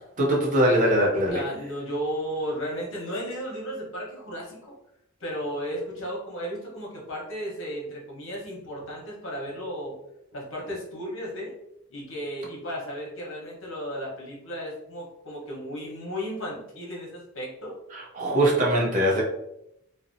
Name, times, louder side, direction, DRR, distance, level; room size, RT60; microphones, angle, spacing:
voice 1, 0.2-1.4 17.9-19.2, right 1 dB, 40° right, -2 dB, 0.6 m, -22 dB
voice 2, 1.3-4.8 5.2-9.9 10.3-11.6 11.9-17.7, equal, 65° left, -3 dB, 0.9 m, -34 dB
2.7 x 2.0 x 2.5 m, 0.81 s
head